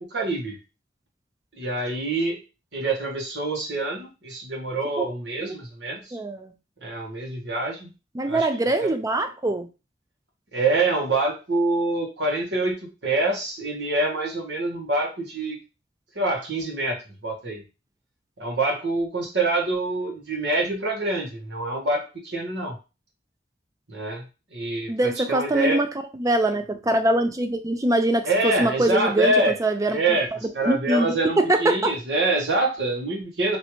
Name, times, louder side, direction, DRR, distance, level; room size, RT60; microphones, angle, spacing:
voice 1, 0.1-0.6 1.6-2.4 2.7-6.2 6.8-7.9 8.3-8.5 8.8-8.9 10.5-12.8 13.0-15.6 16.1-17.0 17.2-17.6 18.4-22.8 23.9-24.2 24.5-25.8 28.2-29.5 29.9-33.6, right 2 dB, 80° right, 0 dB, 1.3 m, -25 dB
voice 2, 6.1-6.5 8.1-9.7 24.9-25.9 26.2-30.2 30.7-32.0, right 1 dB, 20° right, 7 dB, 0.4 m, -23 dB
3.2 x 2.7 x 3.0 m, 0.30 s
head